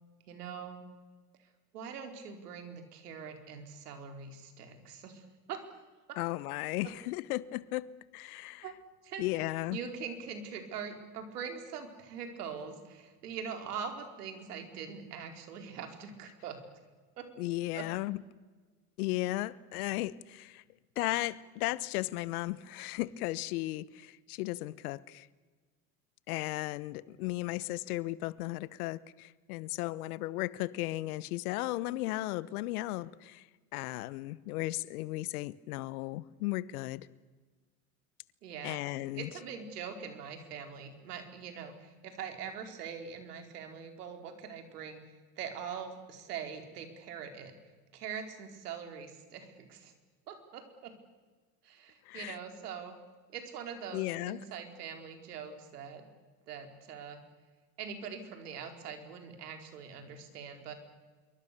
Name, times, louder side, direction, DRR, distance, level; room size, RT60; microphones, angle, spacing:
voice 1, 0.3-0.8 1.7-5.6 8.6-8.7 9.0-9.2 9.7-16.6 17.2-17.3 17.8-17.9 38.4-38.8 39.2-45.0 45.4-47.5 47.9-49.9 50.3-50.9 51.6-52.9 53.3-56.0 56.5-57.2 57.8-60.7, right 7 dB, 85° right, 4.5 m, -43 dB
voice 2, 6.2-8.7 9.2-9.8 17.4-18.2 19.0-20.6 21.0-25.3 26.3-33.5 33.7-37.1 38.6-39.3 52.1-52.4 53.9-54.4, left 18 dB, 70° left, 1.2 m, -35 dB
26.5 x 23.5 x 6.9 m
hypercardioid pair, 100°, 45 cm